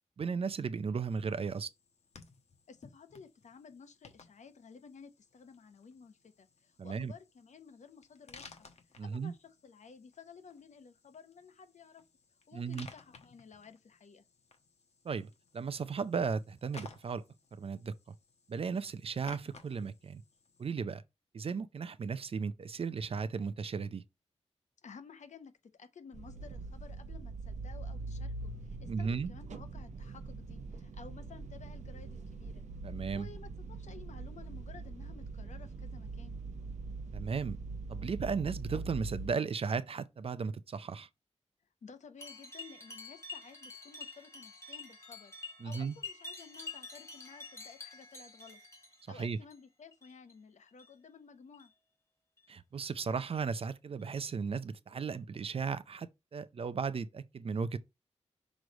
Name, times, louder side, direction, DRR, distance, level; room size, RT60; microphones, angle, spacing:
voice 1, 0.2-1.7 6.8-7.1 9.0-9.3 12.5-12.9 15.0-17.2 17.6-17.9 18.5-20.2 20.6-21.0 21.3-24.0 28.9-29.3 32.8-33.3 37.1-37.6 37.9-41.1 45.6-45.9 49.2-49.4 52.5-56.1 56.3-57.8, right 5 dB, 55° right, 0.5 m, -35 dB
sound 1, 1.1-20.7, left 4 dB, 70° left, 1.1 m, -58 dB
voice 2, 2.7-8.7 9.0-12.0 12.5-14.2 24.8-32.6 33.1-36.4 41.8-48.6 49.1-51.7, left 5 dB, 85° left, 0.9 m, -54 dB
sound 2, 26.1-39.3, right 3 dB, 85° right, 0.8 m, -43 dB
sound 3, 42.2-49.6 49.9-50.3 50.7-50.9 51.5-51.7 52.4-52.5 53.2-53.3 54.0-54.1, left 4 dB, 25° left, 1.5 m, -48 dB
6.2 x 3.2 x 5.2 m
wide cardioid pair, 160°, 12 cm